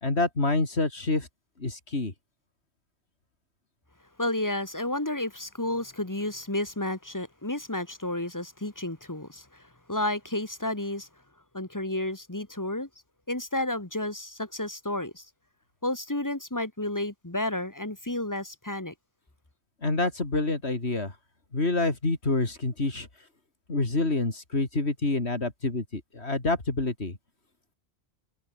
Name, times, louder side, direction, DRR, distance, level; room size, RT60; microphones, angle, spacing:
voice 1, 0.0-1.3 1.6-2.1 19.8-21.1 21.5-23.1 23.7-27.2, left 2 dB, 85° left, 4.0 m, -27 dB
voice 2, 4.2-9.6 9.9-11.1 11.5-12.9 13.3-15.3 15.8-18.9, left 1 dB, 20° left, 1.8 m, -31 dB
omnidirectional pair, 1.1 m